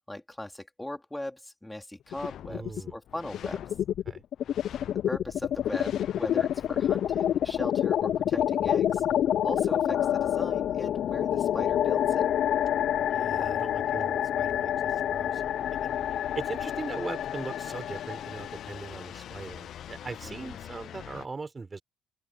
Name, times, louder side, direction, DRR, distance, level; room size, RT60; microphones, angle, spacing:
voice 1, 0.1-3.6 5.1-9.0 9.4-12.3 20.2-20.6, left 1 dB, 5° left, 3.1 m, -39 dB
sound 1, 2.1-2.9 3.2-21.2, left 10 dB, 60° left, 0.4 m, -28 dB
voice 2, 2.5-3.0 4.1-4.2 13.1-15.5 15.8-15.9 16.3-21.8, right 4 dB, 25° right, 4.2 m, -40 dB
open air
cardioid pair, 125°, 0 cm